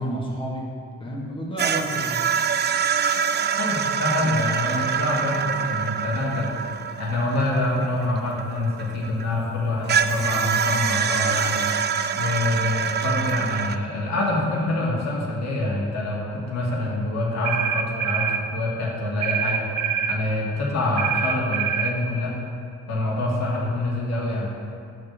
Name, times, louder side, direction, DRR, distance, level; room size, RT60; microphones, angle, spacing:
voice 1, 0.0-2.2, right 1 dB, 15° left, -4 dB, 1.6 m, -30 dB
sound 1, 1.6-9.3 9.9-13.8, right 7 dB, 35° right, 0.4 m, -25 dB
voice 2, 3.6-6.5 7.0-11.7 12.1-19.7 20.1-22.4 22.9-24.5, left 2 dB, 60° left, -4 dB, 2.3 m, -26 dB
sound 2, 17.4-18.4 19.2-20.2 21.0-22.0, right 8 dB, 85° right, 0.6 m, -25 dB
8.2 x 4.8 x 6.8 m, 2.5 s
cardioid pair, 90°, 30 cm